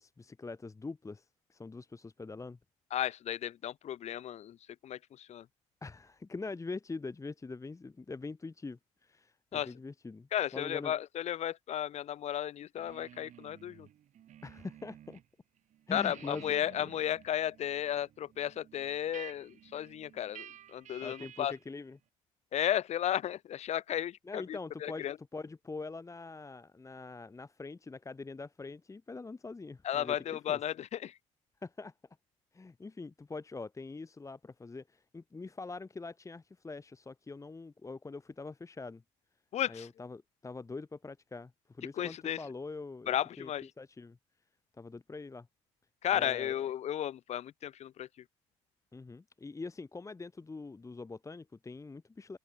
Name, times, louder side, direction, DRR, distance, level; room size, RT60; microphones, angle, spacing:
voice 1, 0.0-2.6 5.8-10.9 14.4-15.2 15.9-16.4 16.8-16.9 21.0-22.0 24.2-30.2 30.5-30.6 31.6-31.9 32.5-39.0 39.7-43.5 43.8-44.2 44.8-45.5 46.1-46.5 48.9-52.4, left 3 dB, 25° left, 1.1 m, -44 dB
voice 2, 2.9-4.6 4.8-5.4 9.5-9.7 10.3-13.9 15.9-21.5 22.5-25.2 29.8-31.2 39.5-39.9 42.0-42.4 43.1-43.7 46.0-48.1, left 11 dB, 55° left, 0.6 m, -34 dB
sound 1, 12.8-15.2 15.6-21.7, right 11 dB, 65° right, 1.5 m, -53 dB
open air
supercardioid pair, 60°, 14 cm